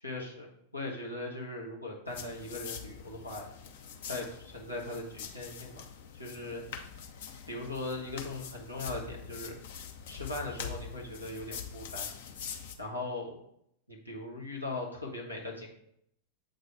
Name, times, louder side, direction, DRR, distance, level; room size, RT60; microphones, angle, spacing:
voice 1, 0.0-3.5 4.0-5.8 6.1-6.6 7.5-9.6 10.1-12.1 12.8-13.4 13.9-15.7, left 2 dB, 85° left, -2 dB, 1.3 m, -39 dB
sound 1, 2.1-12.7, left 7 dB, 55° left, 0.7 m, -44 dB
7.7 x 4.0 x 3.4 m, 0.73 s
figure-of-eight pair, 90°, 0 cm